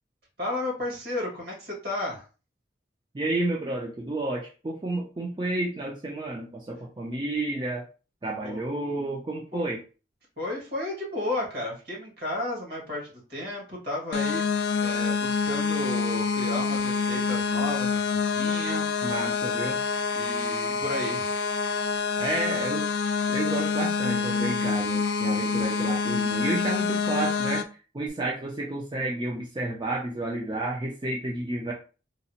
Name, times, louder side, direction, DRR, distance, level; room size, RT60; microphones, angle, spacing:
voice 1, 0.4-2.2 8.4-8.6 9.5-9.7 10.4-18.9 20.1-21.4, left 1 dB, 60° right, -3 dB, 1.6 m, -33 dB
voice 2, 3.1-7.8 8.2-9.8 19.0-19.8 22.2-22.9 23.3-27.6 27.9-31.7, right 2 dB, 25° right, -2 dB, 0.4 m, -31 dB
sound 1, 14.1-27.6, left 5 dB, 65° left, 0.4 m, -27 dB
3.9 x 2.0 x 2.8 m, 0.35 s
head